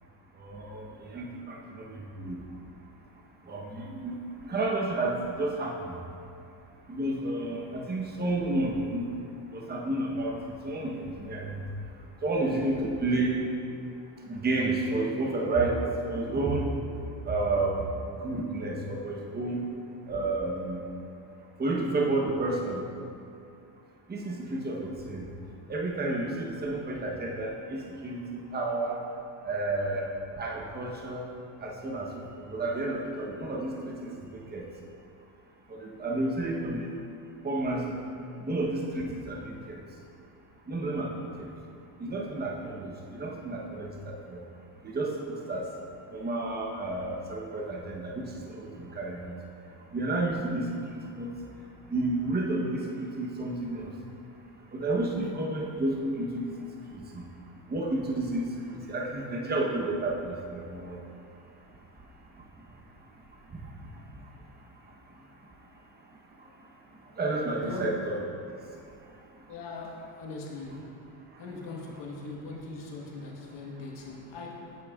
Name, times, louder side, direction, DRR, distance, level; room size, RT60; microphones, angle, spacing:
voice 1, 0.3-2.4 3.4-6.0 6.9-11.7 12.2-13.4 14.2-16.7 17.2-19.6 20.1-20.9 21.6-22.9 24.1-25.3 25.7-29.0 29.4-30.1 30.4-31.3 31.6-34.7 35.7-36.9 37.4-38.0 38.4-39.8 40.7-41.5 42.0-44.4 44.8-45.7 46.1-49.4 49.6-51.3 51.9-54.0 54.7-57.2 57.7-61.0 61.3-61.5 62.0-62.1 62.3-64.3 64.9-65.6 66.1-66.7 67.0-68.2 68.5-69.6 71.3-71.4, right 2 dB, 20° right, -1 dB, 0.9 m, -31 dB
voice 2, 67.6-68.0 69.5-70.9 71.4-74.8, left 3 dB, 60° left, -1 dB, 1.5 m, -40 dB
8.9 x 7.6 x 2.4 m, 2.5 s
supercardioid pair, 95°, 48 cm